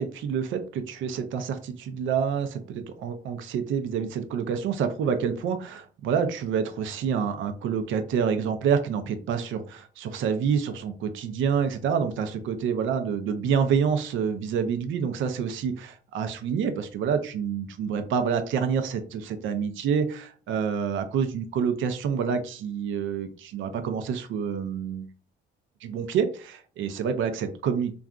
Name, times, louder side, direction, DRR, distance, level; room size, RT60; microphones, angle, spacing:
voice 1, 0.0-25.1 25.8-27.9, right 7 dB, 75° right, 8 dB, 0.5 m, -27 dB
3.7 x 2.3 x 2.3 m, 0.38 s
cardioid pair, 90°, 20 cm